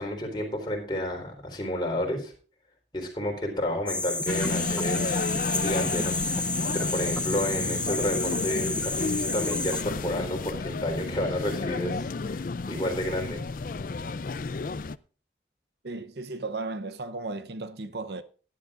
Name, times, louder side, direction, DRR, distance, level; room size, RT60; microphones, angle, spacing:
voice 1, 0.0-2.3 2.9-5.3 5.6-6.2 6.7-12.4 12.7-13.4, left 1 dB, 25° left, 3.9 m, -31 dB
sound 1, 3.9-9.8, left 2 dB, 5° left, 0.7 m, -30 dB
sound 2, 4.3-15.0, left 3 dB, 50° left, 0.4 m, -32 dB
voice 2, 15.8-18.2, right 3 dB, 70° right, 0.8 m, -35 dB
18.5 x 11.0 x 2.5 m
head